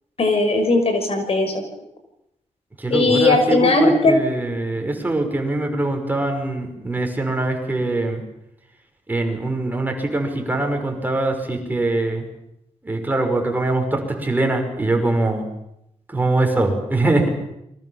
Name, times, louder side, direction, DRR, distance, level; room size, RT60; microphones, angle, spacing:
voice 1, 0.2-1.6 2.9-4.1, left 2 dB, 55° left, 7 dB, 5.9 m, -18 dB
voice 2, 2.8-8.2 9.1-12.3 12.8-15.4 16.1-17.3, right 2 dB, 15° right, 3 dB, 5.6 m, -22 dB
30.0 x 24.0 x 7.3 m, 0.82 s
wide cardioid pair, 135°, 12 cm